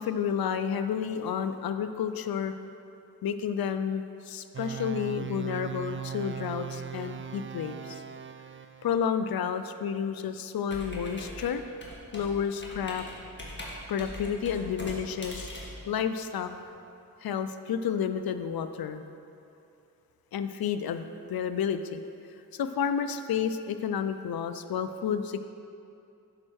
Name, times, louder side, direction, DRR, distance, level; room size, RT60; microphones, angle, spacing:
voice 1, 0.0-2.5 3.2-8.0 8.8-11.6 12.1-13.0 13.9-15.5 15.9-16.5 17.2-19.0 20.3-22.0 22.5-25.4, left 7 dB, 80° left, 9 dB, 0.5 m, -31 dB
sound 1, 4.5-9.0, right 8 dB, 35° right, 0.4 m, -38 dB
Computer keyboard, 10.7-16.6, left 1 dB, 30° left, 1.8 m, -42 dB
8.8 x 4.4 x 6.3 m, 2.6 s
cardioid pair, 55°, 35 cm